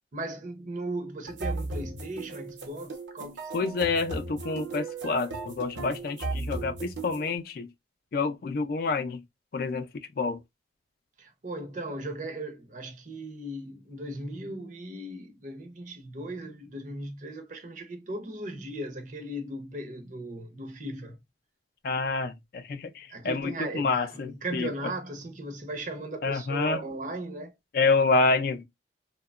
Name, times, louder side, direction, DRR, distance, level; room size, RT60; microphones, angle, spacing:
voice 1, 0.1-3.5 11.2-21.2 23.1-27.5, right 1 dB, 45° right, 0.6 m, -37 dB
sound 1, 1.3-7.4, right 3 dB, 80° right, 0.8 m, -36 dB
voice 2, 3.5-7.7 8.1-9.2 9.5-10.4 21.8-24.7 26.2-26.8 27.7-28.6, left 4 dB, 50° left, 0.4 m, -28 dB
2.8 x 2.2 x 2.3 m
head